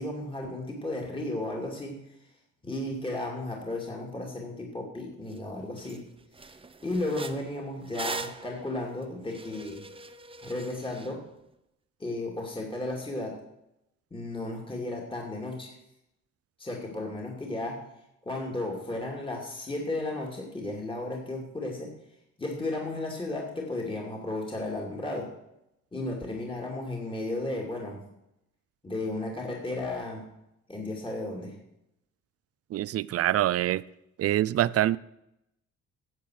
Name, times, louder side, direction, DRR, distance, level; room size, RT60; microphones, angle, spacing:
voice 1, 0.0-2.0 2.6-6.0 6.8-9.8 10.4-11.2 12.0-13.4 14.1-15.7 16.6-17.8 18.2-21.9 22.4-25.3 25.9-28.0 28.8-30.2 30.7-31.6, left 2 dB, 15° left, -1 dB, 2.5 m, -34 dB
sound 1, 5.3-5.4 5.8-6.0 6.3-11.1, right 3 dB, 20° right, 0.7 m, -40 dB
voice 2, 32.7-33.8 34.2-35.0, right 13 dB, 55° right, 20 dB, 0.5 m, -25 dB
10.5 x 7.7 x 6.4 m, 0.84 s
cardioid pair, 90°, 30 cm